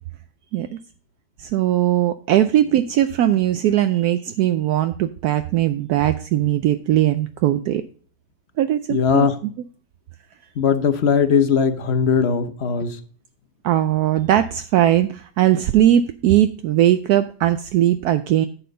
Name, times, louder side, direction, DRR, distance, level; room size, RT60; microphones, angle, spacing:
voice 1, 1.4-7.8 8.6-9.3 13.6-18.5, right 12 dB, 75° right, 9 dB, 1.0 m, -19 dB
voice 2, 8.9-9.4 10.6-13.0, left 6 dB, 50° left, 10 dB, 0.9 m, -19 dB
10.0 x 7.4 x 3.9 m, 0.43 s
omnidirectional pair, 1.7 m